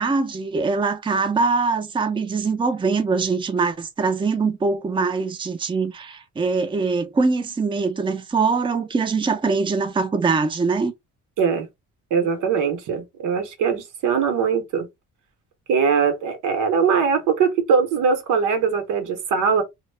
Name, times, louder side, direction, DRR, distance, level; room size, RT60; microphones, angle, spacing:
voice 1, 0.0-10.9, right 4 dB, 15° right, 0.5 m, -23 dB
voice 2, 12.1-14.9 15.7-19.6, right 6 dB, 90° right, 0.8 m, -21 dB
2.2 x 2.0 x 3.2 m
cardioid pair, 90°, 30 cm